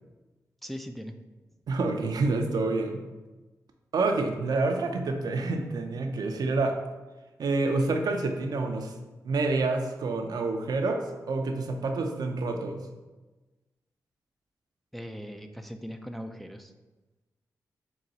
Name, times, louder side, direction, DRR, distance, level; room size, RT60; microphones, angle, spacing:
voice 1, 0.6-1.2 14.9-16.7, equal, ahead, 6 dB, 0.3 m, -39 dB
voice 2, 1.7-3.0 3.9-6.8 7.4-8.9 9.2-12.9, right 3 dB, 70° right, 4 dB, 0.4 m, -28 dB
3.8 x 2.3 x 4.0 m, 1.2 s
supercardioid pair, 45°, 7 cm